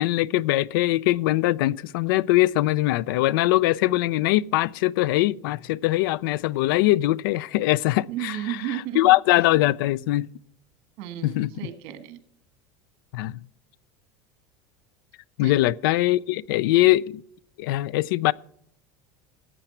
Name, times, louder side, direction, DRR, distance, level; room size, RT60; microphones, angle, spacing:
voice 1, 0.0-8.3 9.0-10.3 11.2-11.5 13.1-13.4 15.4-17.0 17.6-18.3, left 17 dB, 85° left, 0.4 m, -22 dB
voice 2, 8.1-9.1 11.0-12.2 15.4-15.6, right 13 dB, 55° right, 1.7 m, -33 dB
14.0 x 9.1 x 4.4 m
supercardioid pair, 140°, 11 cm